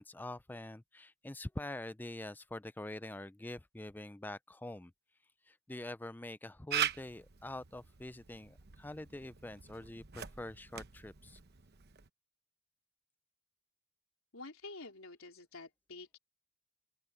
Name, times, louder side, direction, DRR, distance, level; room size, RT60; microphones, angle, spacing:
voice 1, 0.0-4.9 5.5-11.4, left 1 dB, 10° left, 0.4 m, -45 dB
Camera, 6.7-12.1, right 9 dB, 50° right, 1.0 m, -41 dB
voice 2, 14.3-16.2, left 3 dB, 80° left, 3.8 m, -49 dB
open air
head